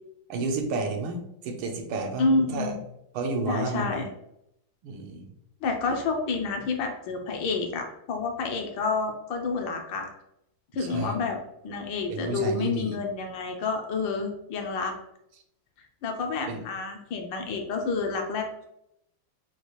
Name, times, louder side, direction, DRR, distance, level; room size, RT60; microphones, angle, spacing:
voice 1, 0.3-2.3 2.5-2.8 3.1-4.1 4.8-5.3 10.8-11.2 12.1-13.0 16.5-16.6, right 3 dB, 85° right, 3 dB, 1.7 m, -31 dB
voice 2, 2.2-2.8 3.5-4.1 5.6-10.1 10.7-11.4 11.6-14.9 16.0-18.6, left 4 dB, 75° left, 3 dB, 1.3 m, -29 dB
6.3 x 2.4 x 3.0 m, 0.80 s
omnidirectional pair, 2.3 m